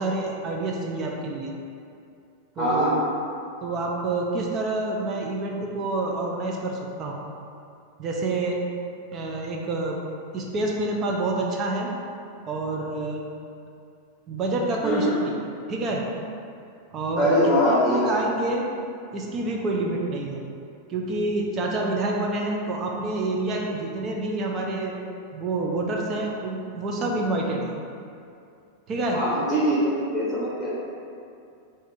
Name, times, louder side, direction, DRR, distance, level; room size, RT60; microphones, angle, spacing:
voice 1, 0.0-1.5 2.6-2.9 3.6-7.2 8.0-8.6 9.1-10.0 10.3-11.9 12.5-13.2 14.3-15.2 15.7-16.0 16.9-17.4 17.6-18.6 19.1-20.5 20.9-24.9 25.3-27.7 28.9-29.2, right 2 dB, 30° right, -1 dB, 0.4 m, -27 dB
voice 2, 2.6-2.9 14.8-15.1 17.2-18.1 29.1-30.7, equal, ahead, -10 dB, 0.8 m, -22 dB
2.5 x 2.5 x 4.0 m, 2.5 s
figure-of-eight pair, 90°, 0 cm